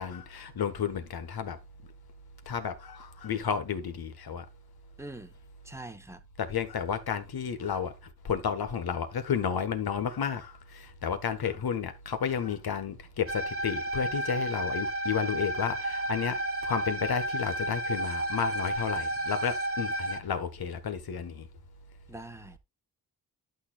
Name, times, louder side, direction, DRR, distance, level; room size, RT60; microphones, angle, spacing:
voice 1, 0.0-1.6 2.4-4.4 6.4-7.9 8.2-21.5, left 7 dB, 65° left, 1.6 m, -32 dB
voice 2, 5.0-5.3 5.6-6.2 22.1-22.6, right 2 dB, 5° right, 1.0 m, -43 dB
sound 1, 13.3-20.2, right 1 dB, 35° right, 1.3 m, -32 dB
11.0 x 6.6 x 2.4 m
wide cardioid pair, 100°, 39 cm